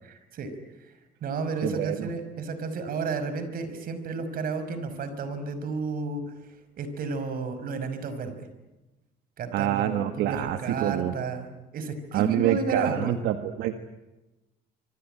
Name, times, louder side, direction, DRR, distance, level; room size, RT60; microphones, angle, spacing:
voice 1, 0.0-0.5 0.8-0.9 1.2-6.2 6.8-8.5 9.4-13.2, right 4 dB, 60° right, 10 dB, 5.5 m, -32 dB
voice 2, 1.6-2.1 9.5-11.1 12.1-13.7, right 12 dB, 85° right, 8 dB, 1.7 m, -26 dB
27.0 x 24.5 x 9.1 m, 1.1 s
cardioid pair, 110°, 17 cm